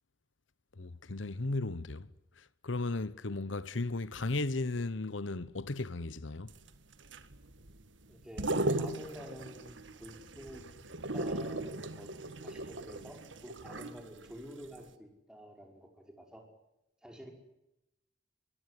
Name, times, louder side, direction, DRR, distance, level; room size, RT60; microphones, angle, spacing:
voice 1, 0.8-2.1 2.4-6.5, left 2 dB, 85° left, 1.1 m, -35 dB
sound 1, 6.5-14.4 14.7-14.8, right 2 dB, 75° right, 1.9 m, -37 dB
voice 2, 8.1-10.7 11.1-12.1 12.4-16.5 17.0-17.3, equal, 5° right, 5.4 m, -49 dB
23.5 x 22.5 x 9.5 m
head